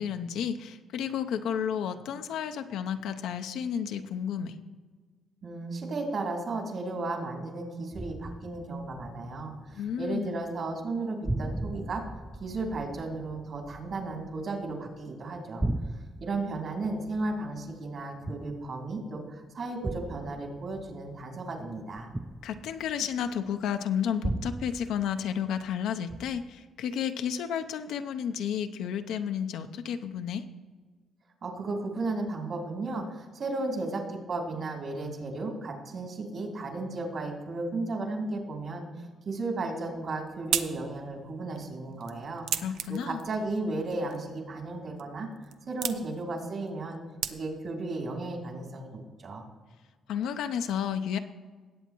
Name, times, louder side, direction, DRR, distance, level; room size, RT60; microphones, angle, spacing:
voice 1, 0.0-4.5 9.7-10.4 22.4-30.4 42.6-43.2 50.1-51.2, left 8 dB, 85° left, 8 dB, 0.6 m, -32 dB
voice 2, 5.4-12.0 12.4-15.6 16.2-22.1 31.4-42.5 42.9-45.3 45.7-47.0 47.3-49.4, right 2 dB, 55° right, 1 dB, 2.9 m, -34 dB
sound 1, 7.9-10.2 10.5-11.0 11.2-15.0 15.3-19.0 19.8-23.4 24.2-25.8 26.1-26.6, right 2 dB, 10° right, 0.5 m, -38 dB
sound 2, 39.8-47.8, right 9 dB, 85° right, 0.5 m, -38 dB
18.5 x 8.1 x 3.0 m, 1.4 s
cardioid pair, 90°, 0 cm